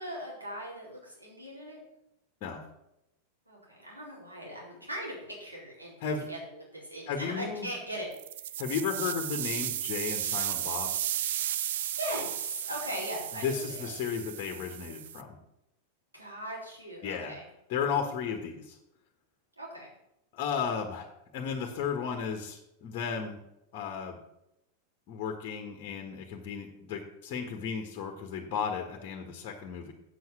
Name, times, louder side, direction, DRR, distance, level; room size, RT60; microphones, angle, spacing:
voice 1, 0.0-1.8 3.5-5.9 6.3-8.1 8.4-8.6 11.9-13.8 16.1-17.4 19.6-19.9, equal, 85° right, -4 dB, 4.3 m, -39 dB
voice 2, 7.1-7.7 8.6-10.9 13.4-15.4 17.0-17.4 17.7-18.8 20.3-21.1 21.3-23.4 23.7-24.2 25.1-29.9, left 6 dB, 40° left, 4 dB, 1.6 m, -34 dB
sound 1, 8.1-15.2, right 11 dB, 55° right, 0.5 m, -34 dB
8.4 x 7.9 x 7.4 m, 0.86 s
figure-of-eight pair, 90°, 0 cm